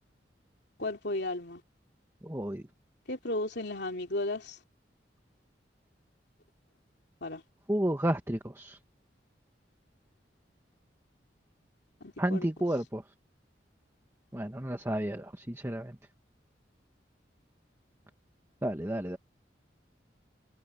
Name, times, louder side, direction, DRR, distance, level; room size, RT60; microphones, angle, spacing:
voice 1, 0.8-1.6 3.1-4.6 7.2-7.4 12.0-12.5, left 2 dB, 65° left, 3.3 m, -34 dB
voice 2, 2.2-2.6 7.7-8.8 12.2-13.0 14.3-15.9 18.6-19.2, right 1 dB, 15° right, 1.3 m, -31 dB
head